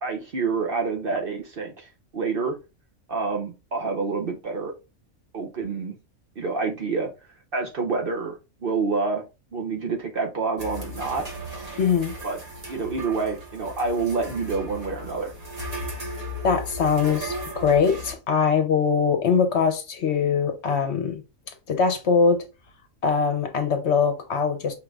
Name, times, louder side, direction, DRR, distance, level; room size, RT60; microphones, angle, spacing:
voice 1, 0.0-2.5 3.1-4.7 5.3-6.0 6.4-7.1 7.5-8.3 8.6-9.2 9.5-11.2 12.2-12.4 12.7-15.3, right 4 dB, 50° right, 0.8 m, -27 dB
sound 1, 10.6-18.2, equal, 30° right, 1.1 m, -36 dB
voice 2, 11.8-12.1 16.4-21.2 21.7-22.4 23.0-24.7, left 5 dB, 60° left, 1.0 m, -22 dB
5.1 x 2.5 x 3.2 m
omnidirectional pair, 1.4 m